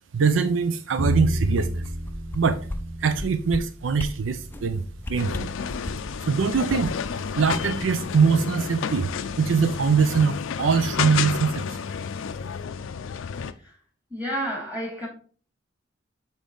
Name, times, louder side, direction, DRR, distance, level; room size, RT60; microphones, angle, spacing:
voice 1, 0.1-1.9 2.3-2.6 3.0-5.5 6.3-9.1 9.4-11.6, right 5 dB, 75° right, 0.5 m, -23 dB
Bowed string instrument, 1.0-7.2, equal, 45° right, 1.2 m, -32 dB
sound 1, 1.3-2.4 2.7-2.8 3.1-3.6 3.9-4.1 4.5-4.7 5.0-6.1 6.5-8.1 8.4-8.5, left 1 dB, 10° left, 0.5 m, -34 dB
sound 2, 5.2-13.5, left 7 dB, 85° left, 0.4 m, -31 dB
voice 2, 14.1-15.1, equal, 10° right, 2.4 m, -30 dB
7.0 x 3.9 x 3.8 m
head